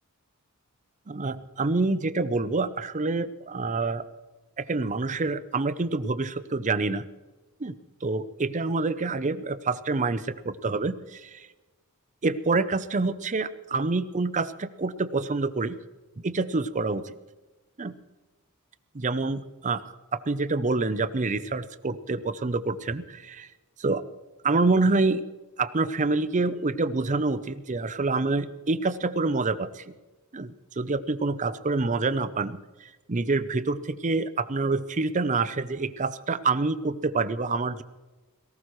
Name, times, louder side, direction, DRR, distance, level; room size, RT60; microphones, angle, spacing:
voice 1, 1.1-4.0 4.6-7.0 7.6-7.7 8.0-11.5 12.2-15.8 16.2-17.2 17.8-17.9 18.9-19.8 20.1-23.5 23.8-24.0 24.4-25.2 25.6-29.8 30.3-37.8, right 3 dB, 35° right, 14 dB, 0.6 m, -27 dB
18.5 x 17.0 x 3.1 m, 1.2 s
head